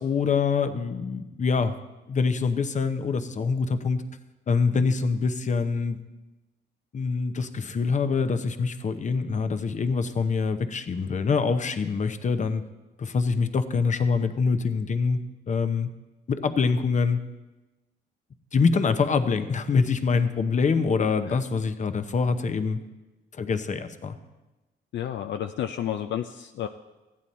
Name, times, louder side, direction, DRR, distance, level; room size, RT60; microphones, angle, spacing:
voice 1, 0.0-1.8 2.1-4.0 4.5-6.0 6.9-12.6 13.0-15.2 15.5-15.9 16.3-17.2 18.5-22.8 23.4-24.2, left 5 dB, 40° left, 10 dB, 0.8 m, -25 dB
voice 2, 24.9-26.7, left 10 dB, 65° left, 7 dB, 0.5 m, -31 dB
14.5 x 9.2 x 4.2 m, 1.1 s
cardioid pair, 90°, 20 cm